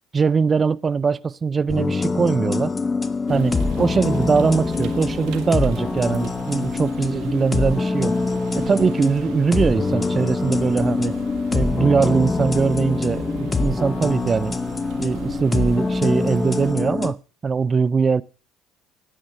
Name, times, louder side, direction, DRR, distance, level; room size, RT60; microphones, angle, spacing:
voice 1, 0.1-2.7 3.3-8.1 8.5-11.1 11.5-14.6 15.0-18.2, right 5 dB, 30° right, 0.5 m, -21 dB
sound 1, 1.7-17.1, left 3 dB, 25° left, 0.8 m, -24 dB
sound 2, 3.3-16.7, right 9 dB, 70° right, 1.5 m, -38 dB
9.6 x 9.2 x 7.8 m
supercardioid pair, 80°, 0 cm